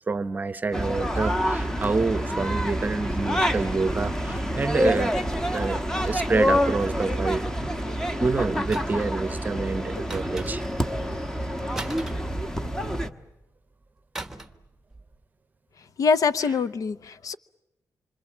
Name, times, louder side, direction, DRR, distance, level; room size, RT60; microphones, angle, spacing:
voice 1, 0.1-5.2 5.5-7.5 8.2-10.6, right 4 dB, 25° right, 0.9 m, -27 dB
sound 1, 0.7-13.1, equal, 10° left, 1.2 m, -27 dB
sound 2, 8.7-9.2 10.1-10.9 11.7-12.9 14.1-14.7 14.9-15.1, right 2 dB, 5° right, 1.2 m, -38 dB
voice 2, 16.0-17.3, left 5 dB, 60° left, 0.9 m, -24 dB
27.0 x 25.0 x 7.4 m
wide cardioid pair, 150°, 7 cm